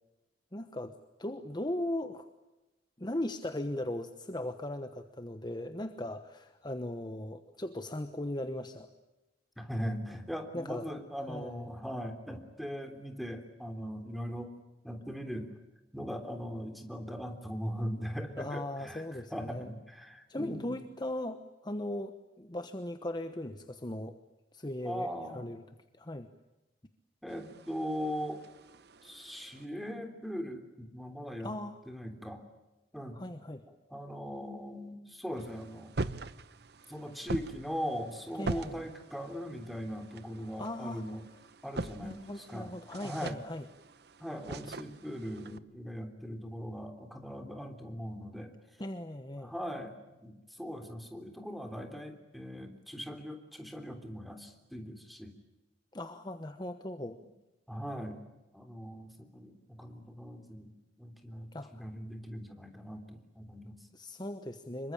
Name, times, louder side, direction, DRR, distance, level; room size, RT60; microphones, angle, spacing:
voice 1, 0.5-2.3 3.0-8.9 10.5-10.9 11.3-11.7 18.4-19.7 20.3-24.2 24.5-25.6 25.9-26.3 31.4-31.8 33.1-33.6 38.4-38.9 40.6-41.0 42.0-43.7 48.8-49.5 55.9-57.2 61.5-61.8 63.9-64.9, left 1 dB, 25° left, 8 dB, 1.2 m, -38 dB
voice 2, 9.6-14.5 14.8-15.5 15.9-20.8 24.8-25.5 27.2-28.4 29.0-31.5 31.9-32.4 32.9-33.2 33.9-35.9 36.9-41.3 41.6-42.7 43.0-43.4 44.2-48.5 49.4-55.3 57.7-58.2 58.5-63.8, equal, ahead, 5 dB, 3.4 m, -40 dB
sound 1, 27.3-29.6 35.4-45.6, right 2 dB, 65° right, 0.9 m, -43 dB
26.5 x 23.5 x 8.8 m, 1.0 s
head